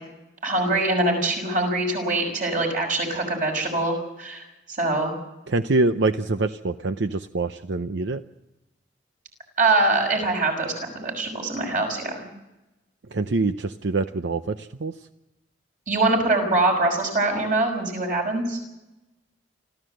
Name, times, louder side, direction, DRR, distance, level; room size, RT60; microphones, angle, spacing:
voice 1, 0.4-4.4 4.7-5.1 9.6-12.3 15.9-18.6, right 2 dB, 45° right, 2 dB, 6.0 m, -23 dB
voice 2, 5.5-8.2 13.1-14.9, right 3 dB, 80° right, 10 dB, 0.7 m, -25 dB
25.5 x 14.5 x 7.8 m, 0.98 s
head